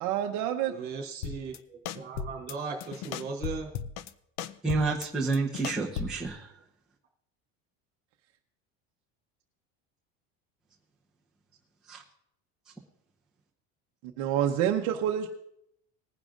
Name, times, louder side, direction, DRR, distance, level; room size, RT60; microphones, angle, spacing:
voice 1, 0.0-0.7 14.2-15.3, right 10 dB, 55° right, 3 dB, 0.8 m, -27 dB
voice 2, 0.7-3.7, right 4 dB, 30° right, -2 dB, 3.0 m, -37 dB
sound 1, 1.2-1.6 1.9-2.5 2.8-4.1 4.4-6.3, left 8 dB, 55° left, 0.6 m, -36 dB
voice 3, 4.6-6.5 11.9-12.0, right 3 dB, ahead, -5 dB, 0.8 m, -29 dB
20.5 x 10.5 x 2.5 m, 0.75 s
cardioid pair, 180°, 33 cm